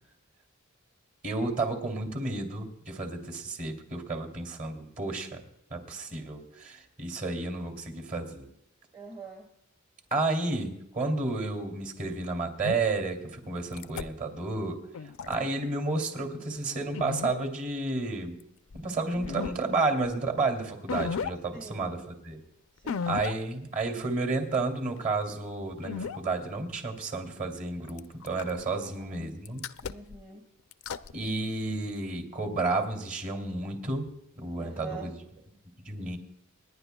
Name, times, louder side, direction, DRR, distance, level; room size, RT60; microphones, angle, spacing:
voice 1, 1.2-5.4 5.7-8.5 10.1-14.8 15.3-18.4 18.7-22.0 22.2-22.4 23.1-29.6 31.1-34.1 34.4-35.1 35.9-36.2, right 3 dB, 45° right, 4 dB, 2.6 m, -31 dB
voice 2, 8.9-9.5 19.1-19.4 21.5-22.0 22.8-23.1 28.7-29.4 29.8-30.5 34.5-35.1, right 4 dB, 25° right, 1 dB, 1.3 m, -45 dB
sound 1, 12.6-12.8 13.7-14.0 14.9-15.4 16.9-17.4 18.7-18.8 19.2-19.5 20.1-20.2 20.9-21.3 22.9-23.3 23.8-23.9 25.8-26.2 27.9-28.6 29.4-30.2 30.7-31.1, left 6 dB, 85° left, 0.5 m, -34 dB
28.5 x 10.5 x 2.3 m, 0.78 s
head